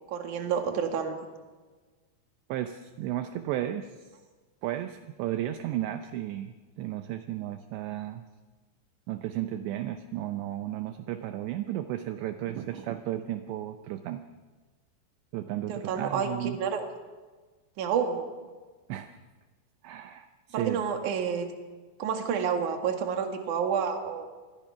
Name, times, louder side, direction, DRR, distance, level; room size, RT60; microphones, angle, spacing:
voice 1, 0.1-1.3 15.7-16.8 17.8-18.3 20.5-21.5 22.0-24.3, right 7 dB, 50° right, 4 dB, 2.9 m, -29 dB
voice 2, 2.5-4.1 4.6-8.3 9.1-14.2 15.3-16.6 18.9-19.1 19.8-20.8, right 13 dB, 75° right, 8 dB, 2.8 m, -34 dB
28.0 x 21.5 x 5.8 m, 1.4 s
omnidirectional pair, 5.5 m